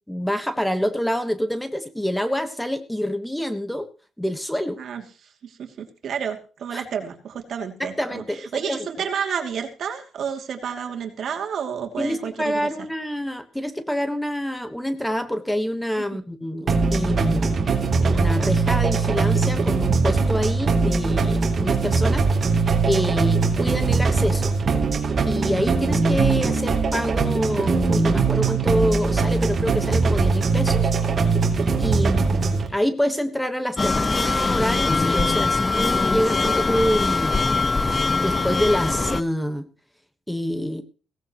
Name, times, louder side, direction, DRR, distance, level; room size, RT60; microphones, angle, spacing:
voice 1, 0.1-3.9 4.2-4.8 6.7-6.8 7.8-8.8 12.0-17.7 18.0-22.3 22.8-24.6 25.3-30.9 31.8-37.4 38.2-39.7 40.3-40.8, equal, 5° left, 9 dB, 1.3 m, -26 dB
voice 2, 5.4-12.6 16.1-16.2 31.9-32.1, right 7 dB, 60° right, 3 dB, 2.6 m, -30 dB
sound 1, 16.7-32.7, right 4 dB, 40° right, 2.9 m, -21 dB
sound 2, 33.8-39.2, left 3 dB, 25° left, 0.8 m, -22 dB
17.0 x 15.0 x 3.1 m, 0.36 s
cardioid pair, 90°, 0 cm